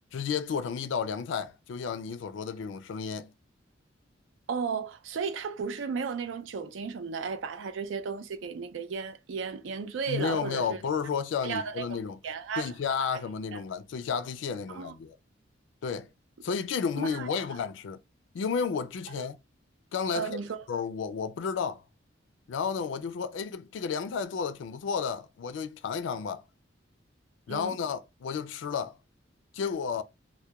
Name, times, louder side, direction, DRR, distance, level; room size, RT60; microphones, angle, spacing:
voice 1, 0.1-3.3 10.1-12.2 12.6-15.1 15.8-16.1 16.4-18.0 18.3-19.4 19.9-20.4 20.7-21.8 22.5-26.4 27.5-29.0 29.5-30.0, left 6 dB, 80° left, 0.3 m, -32 dB
voice 2, 4.5-10.8 11.4-12.0 12.2-12.7 13.1-13.2 13.5-13.6 14.7-14.9 17.0-17.3 19.1-19.2 20.1-20.6 27.5-27.8, right 5 dB, 85° right, 0.4 m, -34 dB
2.2 x 2.1 x 2.8 m
head